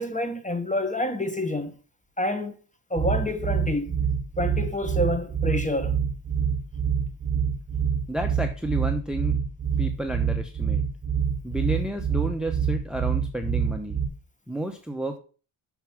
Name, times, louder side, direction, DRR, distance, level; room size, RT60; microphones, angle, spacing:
voice 1, 0.0-1.7 2.2-2.6 2.9-4.0 4.4-6.0, left 1 dB, 15° left, 1.3 m, -28 dB
sound 1, 3.0-14.1, right 7 dB, 20° right, 1.4 m, -26 dB
voice 2, 8.1-9.4 9.8-10.8 11.4-14.0 14.5-15.2, right 1 dB, ahead, 0.9 m, -31 dB
6.1 x 5.5 x 6.0 m
cardioid pair, 85°, 50 cm